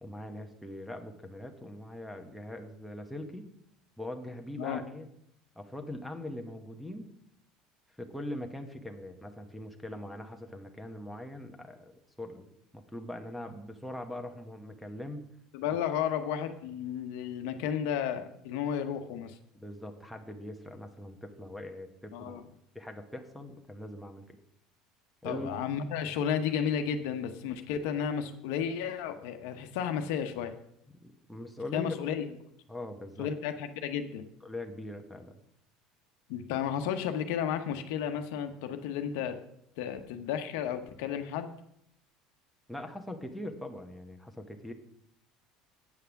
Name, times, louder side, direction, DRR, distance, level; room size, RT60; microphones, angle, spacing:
voice 1, 0.0-3.5 4.0-5.1 5.5-7.1 8.0-12.5 12.7-15.2 15.7-15.8 19.5-22.4 22.7-24.2 25.2-25.6 31.0-32.0 32.7-33.3 34.4-35.4 42.7-44.7, left 1 dB, ahead, 3 dB, 1.0 m, -41 dB
voice 2, 15.5-19.4 22.1-22.4 25.2-30.5 31.7-32.3 33.2-34.3 36.3-39.3 39.8-41.5, left 8 dB, 85° left, 7 dB, 1.0 m, -33 dB
8.4 x 5.8 x 7.0 m, 0.74 s
cardioid pair, 145°, 0 cm